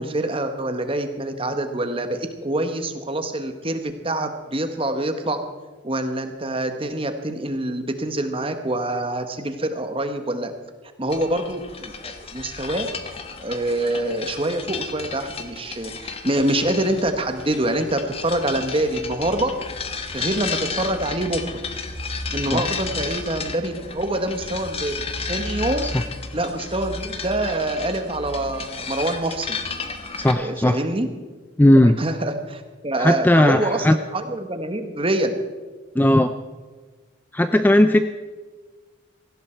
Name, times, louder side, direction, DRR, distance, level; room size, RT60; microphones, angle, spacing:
voice 1, 0.0-5.4 5.8-10.5 11.0-12.9 13.4-19.5 20.1-21.4 22.3-25.9 26.3-29.6 30.3-31.1 31.7-33.9 34.1-35.4, right 1 dB, 25° right, 7 dB, 1.3 m, -25 dB
sound 1, 11.1-30.3, left 4 dB, 30° left, 1.1 m, -33 dB
voice 2, 30.2-30.8 31.6-32.0 33.0-34.0 35.9-36.3 37.3-38.0, left 1 dB, 10° left, 9 dB, 0.4 m, -17 dB
18.0 x 15.5 x 4.5 m, 1.4 s
head